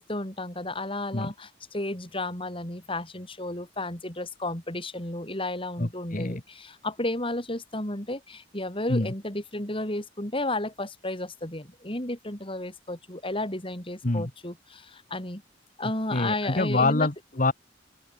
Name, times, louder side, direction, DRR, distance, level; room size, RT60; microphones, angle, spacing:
voice 1, 0.0-15.4 15.8-17.1, left 1 dB, 30° left, 7.1 m, -33 dB
voice 2, 5.8-6.4 8.9-9.1 14.0-14.3 16.1-17.5, left 2 dB, 45° left, 1.5 m, -26 dB
open air
head